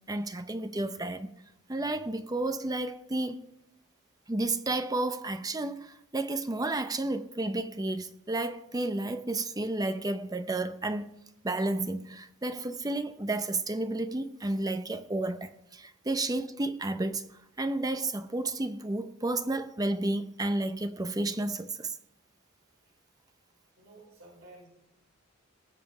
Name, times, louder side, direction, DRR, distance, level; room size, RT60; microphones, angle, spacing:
voice 1, 0.1-1.3 1.7-3.4 4.3-11.1 11.4-17.3 17.6-22.0, right 2 dB, 20° right, 0.7 m, -31 dB
voice 2, 23.8-24.7, right 2 dB, 70° right, 5.2 m, -52 dB
19.5 x 7.5 x 4.9 m
head